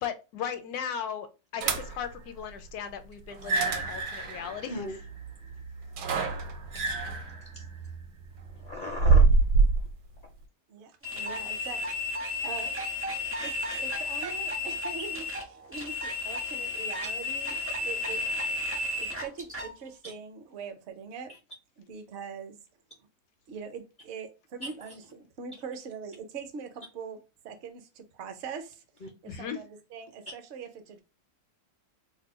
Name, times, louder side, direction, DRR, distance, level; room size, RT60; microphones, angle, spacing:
voice 1, 0.0-1.3 1.5-4.8 29.2-29.6, left 8 dB, 75° left, 1.1 m, -36 dB
sound 1, 1.6-2.1 3.3-9.9, right 4 dB, 75° right, 1.1 m, -26 dB
voice 2, 8.5-9.2 17.0-17.1 29.0-29.1, left 1 dB, 55° left, 0.5 m, -37 dB
voice 3, 10.7-12.1 12.4-12.8 13.4-18.2 19.0-21.3 21.8-22.6 23.5-27.2 27.4-31.0, right 6 dB, 60° right, 0.7 m, -42 dB
sound 2, 11.0-19.7, left 2 dB, 15° right, 0.4 m, -33 dB
2.7 x 2.2 x 3.5 m
omnidirectional pair, 1.7 m